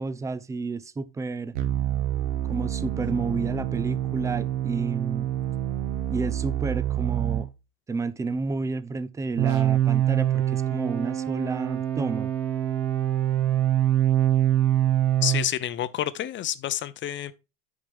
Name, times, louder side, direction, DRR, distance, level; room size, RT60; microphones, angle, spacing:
voice 1, 0.0-1.5 2.5-5.3 6.1-7.5 7.9-12.3, right 3 dB, 10° right, 0.4 m, -30 dB
sound 1, 1.6-7.5 9.4-15.5, right 12 dB, 60° right, 1.4 m, -25 dB
voice 2, 15.2-17.3, left 12 dB, 30° left, 0.7 m, -29 dB
8.6 x 6.0 x 3.5 m
supercardioid pair, 120°, 36 cm